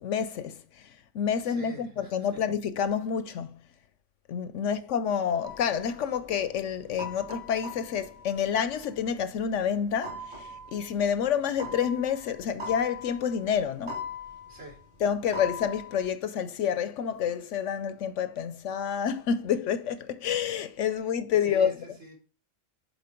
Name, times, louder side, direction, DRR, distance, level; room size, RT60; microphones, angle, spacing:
voice 1, 0.0-3.6 4.3-14.0 15.0-21.7, left 8 dB, 70° left, 0.9 m, -28 dB
voice 2, 1.4-2.4 4.6-4.8 14.5-14.8 21.0-21.1 21.4-22.1, right 2 dB, 65° right, 3.4 m, -47 dB
sound 1, 5.4-9.7 10.0-16.1, left 3 dB, 40° right, 2.5 m, -41 dB
7.2 x 4.4 x 4.3 m
omnidirectional pair, 1.4 m